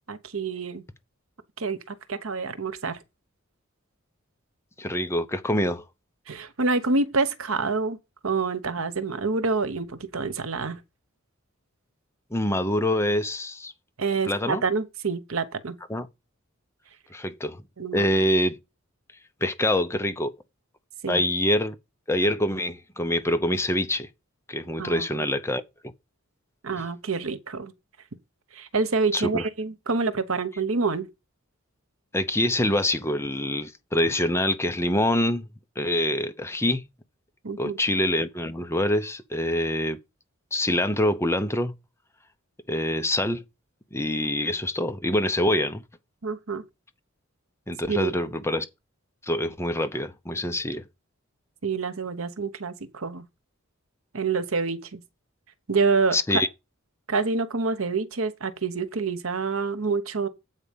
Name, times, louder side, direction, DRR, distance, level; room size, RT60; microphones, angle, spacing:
voice 1, 0.1-0.8 1.6-3.0 6.3-8.0 8.2-10.8 14.0-15.8 17.8-18.1 21.0-21.2 24.8-25.3 26.6-27.7 28.5-31.1 37.4-37.8 46.2-46.6 47.8-48.3 51.6-53.3 54.1-55.0 55.7-56.4 57.1-60.3, right 4 dB, 75° right, 1.1 m, -27 dB
voice 2, 4.8-5.8 12.3-13.7 14.2-14.6 15.9-16.1 17.1-17.6 17.9-18.6 19.4-20.3 21.1-21.8 22.1-24.1 24.5-25.6 29.1-29.4 32.1-35.5 35.8-36.9 37.6-40.0 40.5-41.7 42.7-43.4 43.9-45.8 47.7-48.7 49.2-50.8 56.1-56.5, left 1 dB, 15° left, 0.8 m, -25 dB
8.2 x 4.9 x 7.3 m
head